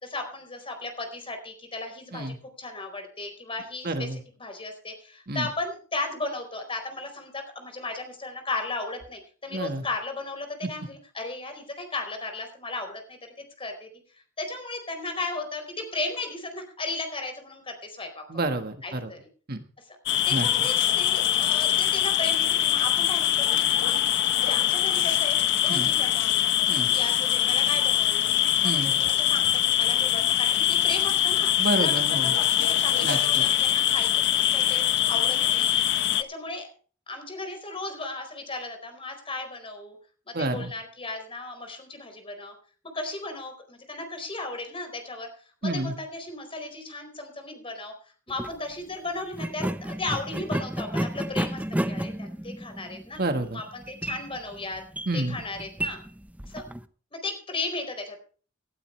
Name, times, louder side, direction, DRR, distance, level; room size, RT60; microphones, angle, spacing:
voice 1, 0.0-13.9 14.4-18.2 18.8-19.2 19.9-20.0 20.3-25.4 25.6-26.4 26.9-28.3 28.6-31.5 31.8-35.8 36.3-36.7 37.1-40.0 40.3-42.5 42.9-45.3 45.6-47.9 48.3-53.2 53.5-54.8 55.1-56.0 56.4-56.6 57.1-58.2, left 2 dB, 30° left, 5 dB, 4.4 m, -35 dB
voice 2, 3.8-4.2 5.3-5.5 9.5-9.8 18.3-19.1 19.5-19.6 20.3-20.5 25.7-25.9 26.7-26.9 28.6-28.9 31.6-32.3 33.0-33.4 40.3-40.7 45.6-45.9 53.2-53.6 55.1-55.4, right 2 dB, 55° right, 7 dB, 1.7 m, -29 dB
sound 1, 20.1-36.2, left 11 dB, 65° left, 0.7 m, -23 dB
sound 2, 48.3-48.5 49.3-56.8, right 1 dB, 10° right, 0.6 m, -32 dB
18.5 x 12.0 x 3.3 m, 0.40 s
head